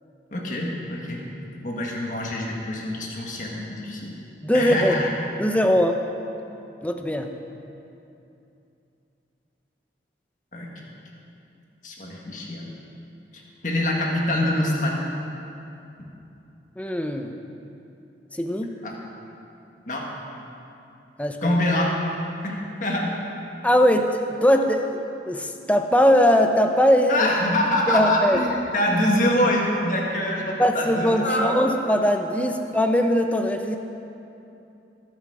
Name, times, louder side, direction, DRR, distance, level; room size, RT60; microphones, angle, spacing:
voice 1, 0.3-1.3 1.6-4.1 4.5-5.1 10.5-10.8 11.8-12.7 13.3-15.0 16.0-16.1 18.8-18.9 19.9-20.1 21.4-21.9 22.4-23.2 27.1-31.5, left 1 dB, 45° left, -2 dB, 1.7 m, -25 dB
voice 2, 4.4-5.0 5.4-6.0 6.8-7.3 16.8-17.3 18.3-18.8 21.2-21.6 23.6-25.0 25.2-27.3 27.9-28.4 30.6-33.8, equal, 10° left, 5 dB, 0.6 m, -20 dB
21.0 x 7.2 x 4.9 m, 2.8 s
head